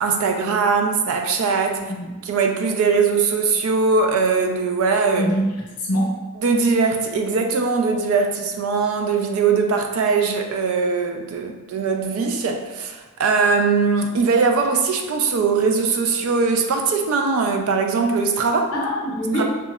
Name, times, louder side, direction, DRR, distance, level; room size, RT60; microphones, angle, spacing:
voice 1, 0.0-1.8 2.3-5.3 6.4-18.7 19.3-19.4, right 4 dB, 70° right, 4 dB, 0.3 m, -20 dB
voice 2, 1.8-2.1 5.2-6.1 18.7-19.4, equal, 85° left, -3 dB, 0.7 m, -24 dB
2.7 x 2.1 x 2.2 m, 1.2 s
head